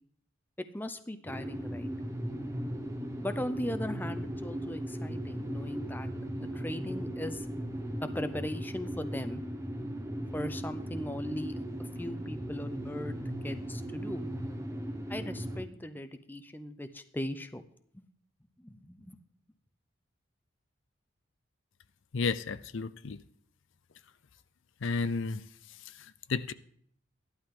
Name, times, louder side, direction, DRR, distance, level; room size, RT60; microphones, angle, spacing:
voice 1, 0.6-1.9 3.2-6.1 6.3-7.5 8.0-9.4 10.3-13.2 13.4-14.2 15.1-17.6 17.9-18.0 18.6-19.2, left 1 dB, 10° left, 0.6 m, -38 dB
sound 1, 1.3-15.6, right 1 dB, 15° right, 0.9 m, -37 dB
voice 2, 22.1-23.2 24.8-25.4 26.0-26.5, left 4 dB, 65° left, 0.5 m, -32 dB
14.5 x 11.5 x 3.7 m
head